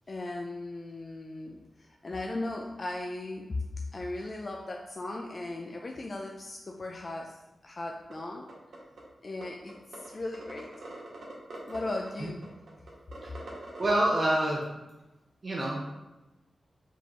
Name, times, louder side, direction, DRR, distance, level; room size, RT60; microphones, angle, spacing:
voice 1, 0.1-3.6 3.9-8.5 9.2-10.7 11.7-12.4, left 2 dB, 40° left, 0 dB, 0.4 m, -37 dB
Geiger Dry, 8.1-8.2 8.5-9.0 9.4-9.5 9.7-10.1 10.3-13.9, right 2 dB, 75° right, 1.2 m, -43 dB
voice 2, 13.8-14.7 15.4-15.8, right 1 dB, 40° right, -3 dB, 0.6 m, -27 dB
4.7 x 3.8 x 2.9 m, 1.0 s
wide cardioid pair, 110°, 0 cm